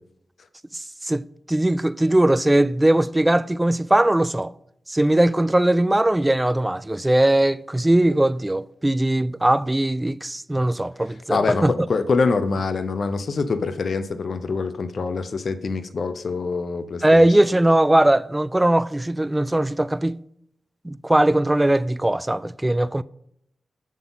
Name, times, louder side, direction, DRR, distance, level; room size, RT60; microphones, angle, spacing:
voice 1, 0.7-4.5 4.9-11.7 17.0-20.2 20.8-23.0, right 1 dB, 15° right, 0.3 m, -20 dB
voice 2, 11.3-17.3, left 4 dB, 65° left, 0.7 m, -25 dB
7.4 x 6.9 x 3.9 m
cardioid pair, 45°, 0 cm